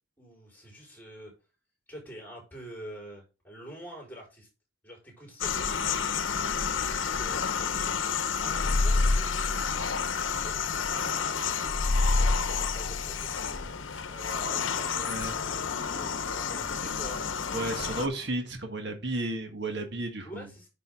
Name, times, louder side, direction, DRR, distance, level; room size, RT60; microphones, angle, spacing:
voice 1, 0.2-1.3 1.9-4.5 4.8-5.7 6.4-9.5 10.3-11.7 12.4-13.7 14.0-18.1 20.2-20.7, equal, 10° left, 0 dB, 4.5 m, -47 dB
sound 1, 5.4-18.1, left 6 dB, 80° left, 0.8 m, -31 dB
sound 2, 8.5-10.6 11.7-13.7, left 2 dB, 30° left, 0.3 m, -28 dB
voice 2, 15.0-15.3 17.5-20.5, right 2 dB, 60° right, 5 dB, 1.6 m, -33 dB
9.1 x 5.3 x 3.8 m, 0.30 s
head